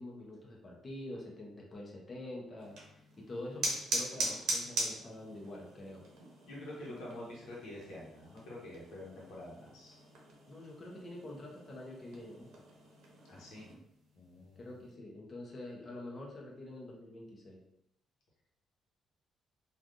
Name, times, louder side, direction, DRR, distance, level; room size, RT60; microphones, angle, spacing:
voice 1, 0.0-2.7 3.3-6.0 10.5-12.5 14.6-17.6, left 1 dB, 35° left, -2 dB, 0.8 m, -46 dB
sound 1, 2.6-13.7, right 2 dB, 85° right, 0.7 m, -41 dB
voice 2, 6.4-10.0 13.2-13.7 14.1-14.8, left 1 dB, 85° left, -5 dB, 0.9 m, -47 dB
3.2 x 2.4 x 2.5 m, 0.79 s
cardioid pair, 90°, 0 cm